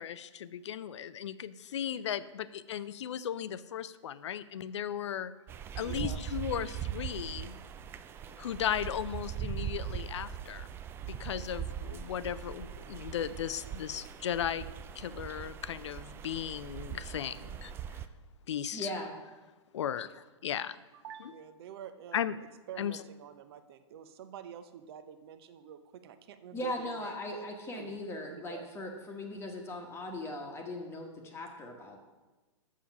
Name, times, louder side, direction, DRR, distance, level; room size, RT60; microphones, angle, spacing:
voice 1, 0.0-5.3 5.8-7.5 8.4-10.7 11.2-14.7 15.0-17.7 18.5-18.9 19.7-20.1 20.4-20.8 22.1-22.3 22.8-22.9, left 9 dB, 65° left, 15 dB, 0.5 m, -36 dB
sound 1, 5.5-18.1, right 9 dB, 15° right, 0.3 m, -41 dB
voice 2, 5.7-6.3 20.9-27.5 27.7-28.0 28.3-28.7, right 9 dB, 50° right, 11 dB, 0.7 m, -48 dB
voice 3, 18.7-19.1 26.5-32.0, left 1 dB, 15° left, 1 dB, 1.2 m, -39 dB
7.4 x 7.0 x 5.9 m, 1.2 s
hypercardioid pair, 120°, 16 cm